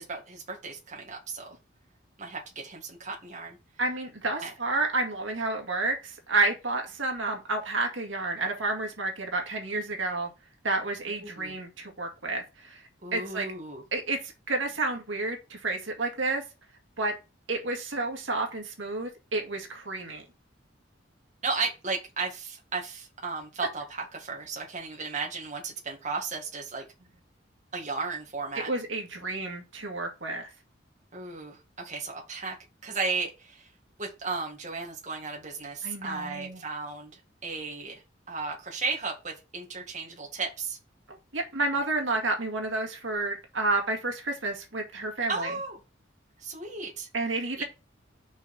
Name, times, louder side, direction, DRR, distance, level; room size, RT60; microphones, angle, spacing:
voice 1, 0.0-1.6 2.2-3.6 4.4-4.5 11.2-11.6 13.0-13.8 21.4-26.8 27.7-28.7 31.1-32.6 32.8-33.7 34.0-37.1 37.4-38.0 38.3-40.8 45.3-45.8 46.4-47.1 47.6-47.7, right 4 dB, 40° right, -1 dB, 1.9 m, -35 dB
voice 2, 3.8-10.3 10.6-12.8 13.1-13.5 13.9-16.4 17.0-17.1 17.5-20.2 28.5-30.5 35.8-36.6 41.3-45.5 47.1-47.6, right 2 dB, 75° right, 2 dB, 2.0 m, -30 dB
6.3 x 5.2 x 4.3 m, 0.28 s
head